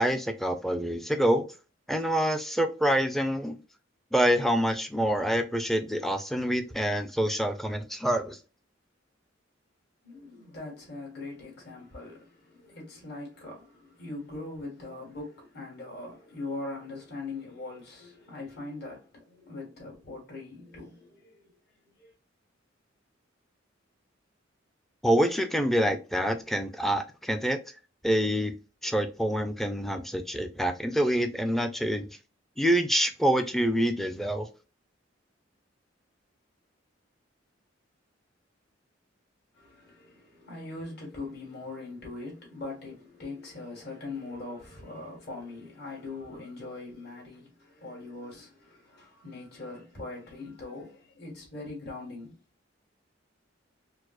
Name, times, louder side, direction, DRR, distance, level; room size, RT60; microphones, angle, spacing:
voice 1, 0.0-1.5 1.9-3.6 4.1-8.4 25.0-27.6 28.0-28.5 28.8-32.1 32.6-34.5, equal, ahead, 0.4 m, -26 dB
voice 2, 10.0-21.5 22.0-22.1 39.5-52.3, left 2 dB, 55° left, 1.6 m, -41 dB
4.7 x 2.0 x 2.3 m
head